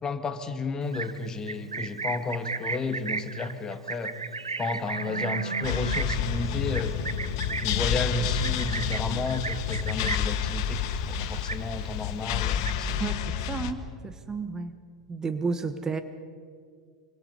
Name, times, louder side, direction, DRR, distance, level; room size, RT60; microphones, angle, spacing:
voice 1, 0.0-4.1 4.6-6.9 7.6-13.1, left 3 dB, 25° left, 8 dB, 1.9 m, -32 dB
Livestock farm animals working animals, 0.8-10.4 10.8-11.1 11.3-12.0 12.3-13.0, right 4 dB, 90° right, 0.8 m, -34 dB
sound 1, 5.6-13.7, left 8 dB, 55° left, 1.4 m, -29 dB
voice 2, 13.0-14.8 15.1-16.0, right 4 dB, 20° right, 9 dB, 1.2 m, -32 dB
25.0 x 25.0 x 5.5 m, 2.1 s
figure-of-eight pair, 90°, 3 cm